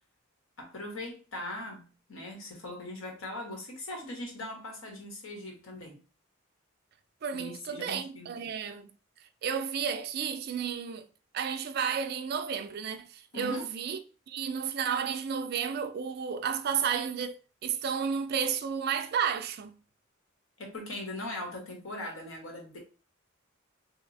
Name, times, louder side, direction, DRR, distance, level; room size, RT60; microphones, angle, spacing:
voice 1, 0.6-6.0 7.3-8.6 13.3-13.6 20.6-22.8, left 1 dB, 75° left, 1.0 m, -40 dB
voice 2, 7.2-8.9 9.4-11.1 11.3-14.0 14.3-17.4 17.6-19.7, right 7 dB, 50° right, 0.3 m, -32 dB
2.9 x 2.0 x 4.0 m
head